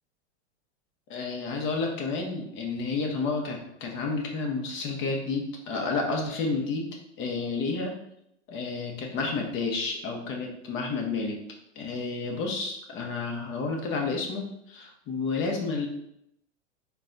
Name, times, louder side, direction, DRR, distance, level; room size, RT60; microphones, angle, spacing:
voice 1, 1.1-6.9 7.2-8.0 8.5-11.4 11.8-15.9, left 4 dB, 35° left, 1 dB, 0.9 m, -30 dB
4.0 x 2.3 x 3.8 m, 0.77 s
hypercardioid pair, 115°, 36 cm